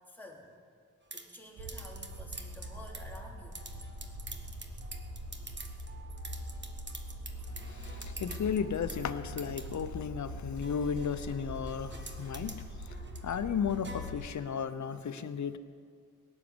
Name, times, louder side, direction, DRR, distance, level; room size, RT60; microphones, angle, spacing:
voice 1, 0.1-0.5 1.1-3.7, left 1 dB, 5° left, -2 dB, 3.3 m, -50 dB
sound 1, 1.1-14.6, right 3 dB, 35° right, 1.4 m, -48 dB
sound 2, 1.6-14.2, equal, 90° right, 3.0 m, -43 dB
voice 2, 7.6-13.0 13.2-15.6, left 7 dB, 65° left, 11 dB, 0.9 m, -34 dB
17.5 x 7.4 x 9.8 m, 2.2 s
cardioid pair, 70°, 30 cm